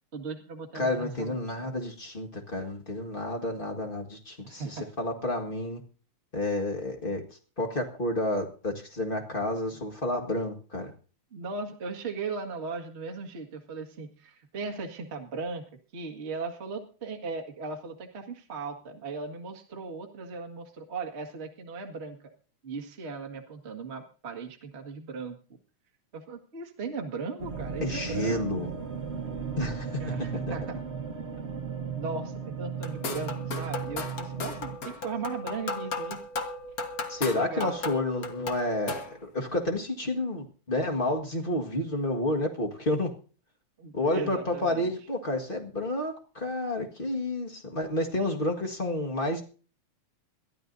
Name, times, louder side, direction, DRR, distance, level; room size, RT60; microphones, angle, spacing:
voice 1, 0.1-1.4 1.6-1.8 4.4-4.9 11.3-15.6 15.9-22.2 22.6-25.4 26.1-28.4 30.0-30.8 31.9-36.2 37.3-37.8 43.8-44.9, right 4 dB, 30° right, 3 dB, 1.5 m, -37 dB
voice 2, 0.7-5.8 6.3-7.2 7.6-10.9 27.8-28.7 29.6-30.0 30.5-30.6 37.1-43.1 43.9-49.4, left 1 dB, 25° left, 2 dB, 1.3 m, -30 dB
sound 1, 27.4-34.8, right 6 dB, 85° right, 0.5 m, -36 dB
sound 2, 32.8-39.2, left 3 dB, 50° left, 1.1 m, -36 dB
22.0 x 13.0 x 2.7 m, 0.38 s
omnidirectional pair, 3.3 m